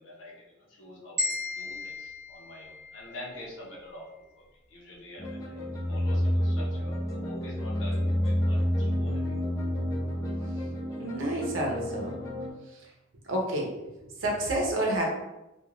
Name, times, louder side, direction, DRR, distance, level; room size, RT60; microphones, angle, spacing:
voice 1, 0.0-4.1 4.4-9.3, left 1 dB, 75° left, -4 dB, 0.8 m, -46 dB
sound 1, 1.2-3.4, left 2 dB, 45° right, 0.7 m, -35 dB
sound 2, 5.2-12.5, equal, 15° left, 0.4 m, -29 dB
voice 2, 11.0-12.2 13.3-15.1, right 1 dB, 80° right, -1 dB, 0.7 m, -29 dB
2.9 x 2.4 x 2.4 m, 0.96 s
head